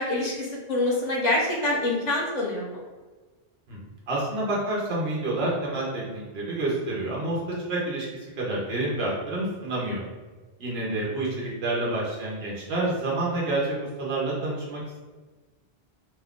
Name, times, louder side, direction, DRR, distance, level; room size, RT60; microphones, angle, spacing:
voice 1, 0.0-2.8, left 2 dB, 45° left, -3 dB, 0.9 m, -26 dB
voice 2, 3.7-8.1 8.4-10.0 10.6-15.0, right 2 dB, 80° right, -4 dB, 1.0 m, -28 dB
2.8 x 2.3 x 3.5 m, 1.3 s
omnidirectional pair, 1.0 m